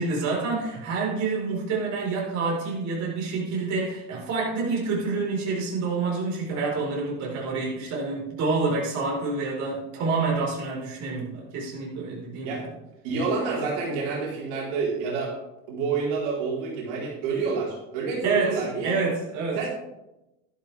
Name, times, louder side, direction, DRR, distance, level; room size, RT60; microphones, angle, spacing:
voice 1, 0.0-12.6 18.2-19.6, right 4 dB, 45° right, -3 dB, 4.6 m, -28 dB
voice 2, 13.0-15.4 15.7-18.9 19.5-19.7, right 4 dB, 75° right, -4 dB, 4.4 m, -28 dB
12.5 x 11.5 x 3.5 m, 0.92 s
supercardioid pair, 135°, 37 cm